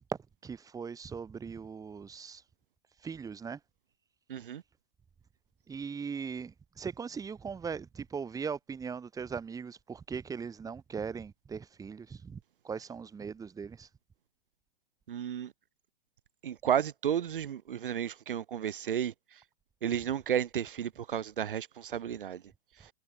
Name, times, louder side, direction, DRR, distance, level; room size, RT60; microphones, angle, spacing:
voice 1, 0.4-2.4 3.0-3.6 5.7-12.4 12.6-13.9, right 6 dB, 10° right, 4.4 m, -39 dB
voice 2, 4.3-4.6 15.1-15.5 16.4-19.1 19.8-22.4, right 9 dB, 60° right, 4.0 m, -32 dB
figure-of-eight pair, 120°, 29 cm